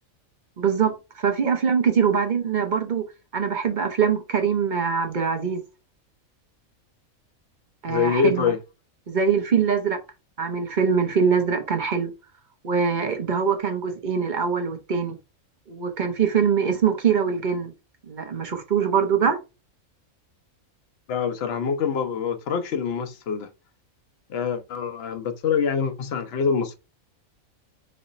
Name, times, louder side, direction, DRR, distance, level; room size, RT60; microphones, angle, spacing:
voice 1, 0.6-3.0 3.3-5.6 7.8-8.5 9.1-10.0 10.4-12.1 12.6-15.2 15.7-17.7 18.0-19.4, right 6 dB, 40° right, 0.8 m, -23 dB
voice 2, 7.9-8.6 21.1-23.5 24.3-26.8, left 6 dB, 55° left, 0.9 m, -25 dB
4.2 x 3.2 x 3.9 m
omnidirectional pair, 1.5 m